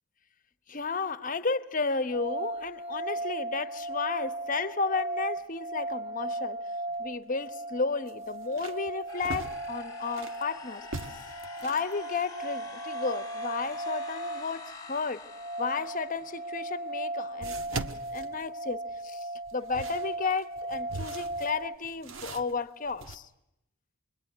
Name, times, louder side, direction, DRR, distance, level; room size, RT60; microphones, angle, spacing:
voice 1, 0.7-6.6 7.0-11.3 11.6-15.2 15.6-23.3, left 4 dB, 40° left, 1.0 m, -33 dB
sound 1, 2.1-21.8, right 1 dB, 25° right, 1.7 m, -37 dB
sound 2, 6.9-7.0 7.4-7.5 8.1-10.4 10.8-11.9 16.2-16.3 17.4-19.0 19.5-23.2, right 3 dB, 70° right, 1.5 m, -41 dB
sound 3, 9.1-17.0, left 4 dB, 20° left, 1.6 m, -46 dB
28.0 x 22.0 x 9.5 m
head